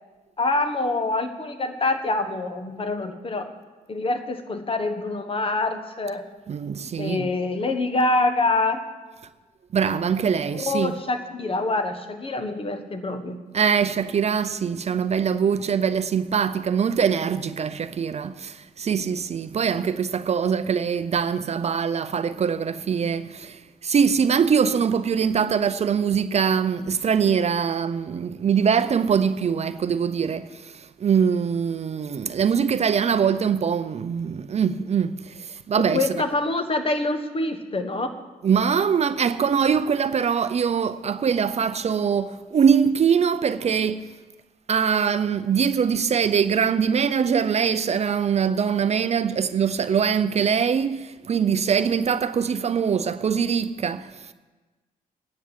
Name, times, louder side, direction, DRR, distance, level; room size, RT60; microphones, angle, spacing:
voice 1, 0.4-3.5 3.9-6.3 7.0-8.8 10.5-13.4 35.8-38.1, left 2 dB, 35° left, 1.3 m, -25 dB
voice 2, 6.5-7.3 9.7-10.9 13.5-36.0 38.4-44.1 44.7-54.1, right 7 dB, 45° right, 0.5 m, -23 dB
10.0 x 9.6 x 7.5 m
cardioid pair, 105°, 15 cm